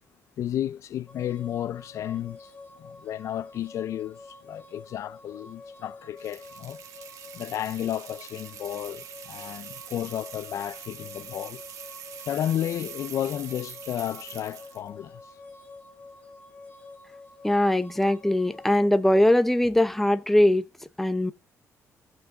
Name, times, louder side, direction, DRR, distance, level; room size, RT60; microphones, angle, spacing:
voice 1, 0.4-2.5 2.8-6.8 7.3-11.6 12.3-15.4, left 11 dB, 60° left, 0.4 m, -32 dB
sound 1, 1.1-18.9, left 3 dB, 25° left, 2.0 m, -48 dB
sound 2, 6.2-14.9, right 8 dB, 70° right, 1.9 m, -44 dB
voice 2, 17.4-20.7 21.0-21.3, left 1 dB, 5° left, 0.7 m, -21 dB
15.0 x 6.1 x 3.8 m
cardioid pair, 135°, 6 cm